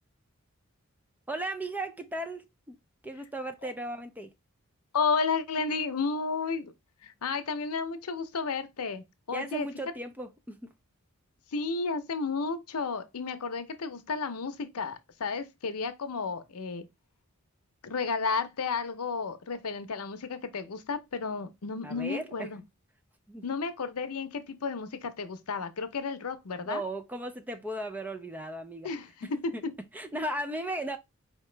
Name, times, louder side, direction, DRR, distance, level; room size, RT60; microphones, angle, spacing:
voice 1, 1.3-2.8 3.0-4.3 9.3-10.7 21.8-22.5 23.3-23.4 26.7-29.0 29.2-29.6 29.9-31.0, right 1 dB, 5° right, 0.3 m, -36 dB
voice 2, 4.9-6.7 7.0-9.7 11.5-16.9 17.8-22.6 23.4-26.8 28.8-29.5, left 4 dB, 85° left, 0.7 m, -32 dB
4.5 x 2.9 x 3.2 m
head